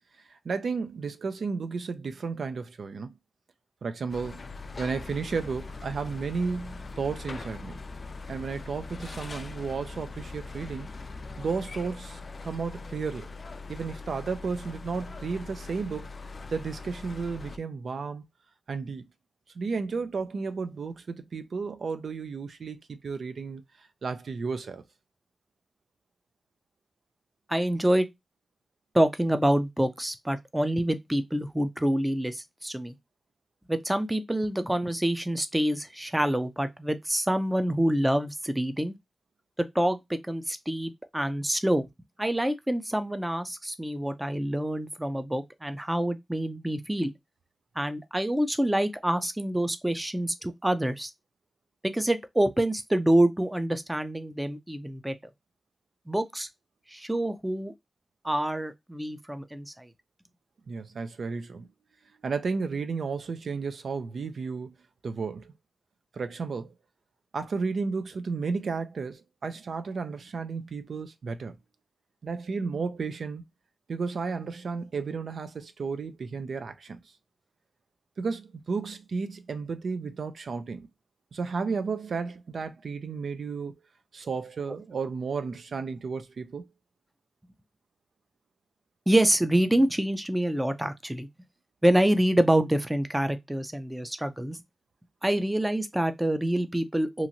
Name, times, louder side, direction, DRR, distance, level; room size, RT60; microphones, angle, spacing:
voice 1, 0.4-3.1 3.8-4.5 4.8-7.8 8.3-10.9 11.4-13.3 13.7-16.1 16.5-18.2 18.7-19.1 19.6-23.6 24.0-24.8 60.7-61.7 62.2-64.7 65.0-65.5 66.1-66.7 67.3-71.5 72.2-73.4 73.9-77.0 78.2-80.9 81.3-83.7 84.1-86.6, right 4 dB, 80° right, 0.4 m, -33 dB
sound 1, 4.1-17.6, left 3 dB, 50° left, 0.3 m, -41 dB
voice 2, 27.5-28.1 28.9-32.9 33.7-39.0 39.6-41.9 42.2-47.1 47.8-51.1 51.8-55.2 56.1-56.5 56.9-57.7 58.2-59.9 89.1-91.3 91.8-94.6 95.2-97.3, right 1 dB, 10° right, 0.4 m, -26 dB
2.9 x 2.4 x 2.6 m
wide cardioid pair, 90°, 0 cm